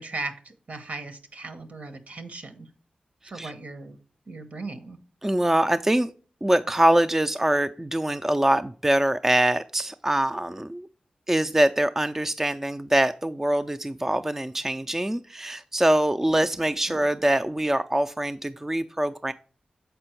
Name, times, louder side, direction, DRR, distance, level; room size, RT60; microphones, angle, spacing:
voice 1, 0.0-2.7 3.2-4.0 4.3-5.0 16.9-17.0, right 3 dB, 60° right, 1.0 m, -37 dB
voice 2, 5.2-6.1 6.4-10.9 11.3-19.3, right 1 dB, 15° right, 0.3 m, -24 dB
6.9 x 4.4 x 4.4 m
cardioid pair, 50°, 3 cm